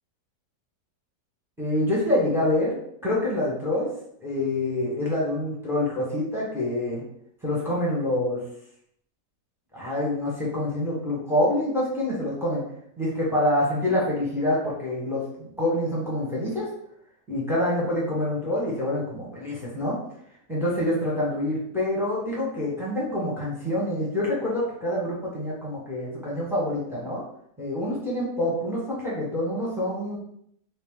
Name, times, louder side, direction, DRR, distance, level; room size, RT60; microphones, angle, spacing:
voice 1, 1.6-2.8 3.0-3.9 4.2-7.0 7.4-8.4 9.7-12.6 13.0-16.7 17.3-20.0 20.5-27.2 27.6-30.2, left 1 dB, ahead, -5 dB, 0.8 m, -26 dB
3.1 x 2.8 x 3.6 m, 0.70 s
omnidirectional pair, 1.9 m